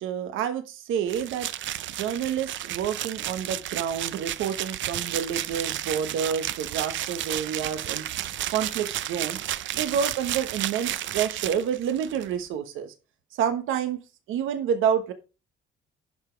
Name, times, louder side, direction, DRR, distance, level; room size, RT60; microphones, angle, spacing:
voice 1, 0.0-1.5 1.9-8.0 8.5-9.4 9.7-12.9 13.3-14.0 14.3-15.1, right 8 dB, 90° right, 9 dB, 1.1 m, -28 dB
sound 1, 1.1-12.3, right 13 dB, 70° right, 0.6 m, -32 dB
11.0 x 5.1 x 4.5 m, 0.31 s
cardioid pair, 90°, 20 cm